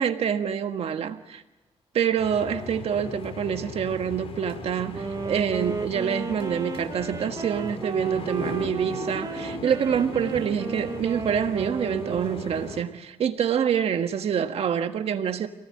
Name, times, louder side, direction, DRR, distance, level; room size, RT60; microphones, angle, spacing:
voice 1, 0.0-1.4 1.9-15.5, right 8 dB, 65° right, 1.7 m, -26 dB
sound 1, 2.2-12.8, left 4 dB, 60° left, 4.6 m, -38 dB
Wind instrument woodwind instrument, 4.9-13.0, right 4 dB, 35° right, 1.4 m, -34 dB
28.5 x 18.5 x 8.8 m
cardioid pair, 100°, 11 cm